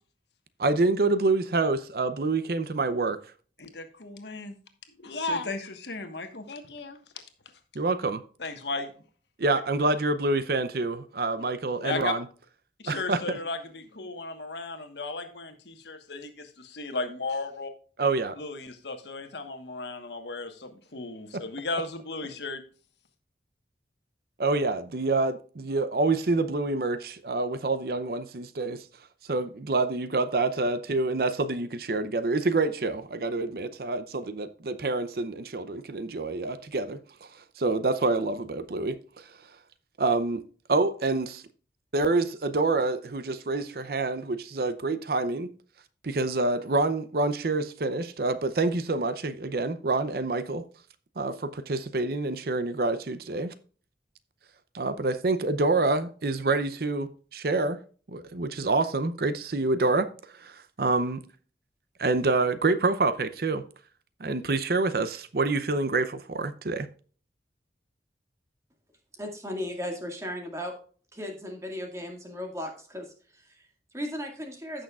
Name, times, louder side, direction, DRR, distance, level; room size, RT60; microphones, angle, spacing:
voice 1, 0.6-3.2 7.7-8.2 9.4-12.2 12.9-13.2 18.0-18.4 24.4-28.8 29.3-37.0 37.6-39.3 40.0-40.4 40.7-41.4 41.9-45.5 46.0-50.6 51.2-53.5 54.7-57.8 58.1-61.2 62.0-63.6 64.2-66.9, right 3 dB, 55° right, 0.6 m, -27 dB
voice 2, 3.6-4.6 5.0-7.2 8.4-8.9 9.5-9.6 10.9-11.0 11.8-12.1 12.8-17.7 18.4-22.6, left 3 dB, 80° left, 1.4 m, -35 dB
voice 3, 69.2-70.7 71.1-74.8, left 1 dB, 15° right, 2.0 m, -36 dB
15.5 x 6.4 x 2.4 m
head